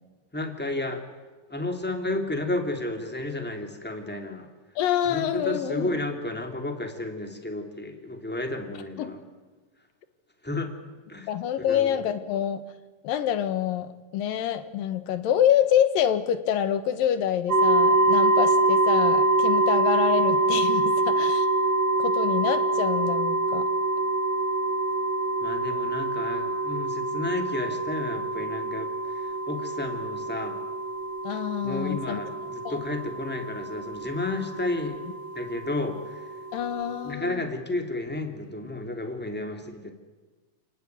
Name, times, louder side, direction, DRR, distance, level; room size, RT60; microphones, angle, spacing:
voice 1, 0.3-1.0 1.5-4.5 5.0-9.2 10.4-10.7 11.1-11.3 11.6-12.0 25.4-30.6 31.6-35.0 35.3-36.2 37.0-39.9, left 2 dB, 5° left, 5 dB, 1.8 m, -32 dB
voice 2, 4.8-5.9 9.0-9.1 11.3-12.6 13.0-21.5 22.0-23.7 31.2-32.2 32.6-32.8 36.5-37.4, left 10 dB, 75° left, 11 dB, 3.0 m, -26 dB
sound 1, 17.5-37.1, right 2 dB, 30° right, 4.3 m, -25 dB
28.5 x 18.5 x 9.4 m, 1.3 s
omnidirectional pair, 4.0 m